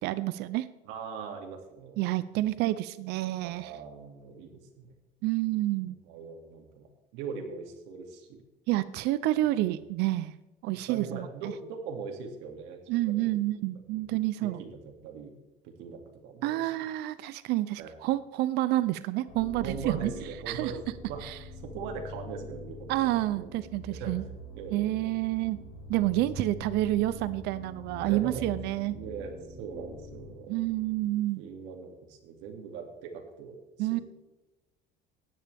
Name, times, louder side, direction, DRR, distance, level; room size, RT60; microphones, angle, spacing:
voice 1, 0.0-0.7 2.0-3.7 5.2-6.0 8.7-10.4 10.6-11.5 12.9-14.6 16.4-20.1 20.5-20.7 21.2-21.4 22.9-24.2 24.7-25.6 25.9-29.0 30.5-31.4 33.8-34.0, right 16 dB, 65° right, 15 dB, 0.5 m, -29 dB
voice 2, 0.9-2.0 3.4-4.9 5.8-8.4 9.3-9.8 10.9-13.4 13.9-14.1 14.4-15.3 15.6-16.7 17.8-17.9 19.6-21.2 21.6-23.6 24.0-24.1 24.5-25.1 28.0-28.5 28.9-30.6 31.0-31.1 31.4-34.0, right 5 dB, 90° right, 3 dB, 2.5 m, -41 dB
sound 1, 19.3-31.1, left 2 dB, 40° left, 3.9 m, -45 dB
16.0 x 10.5 x 3.5 m, 1.1 s
cardioid pair, 175°, 18 cm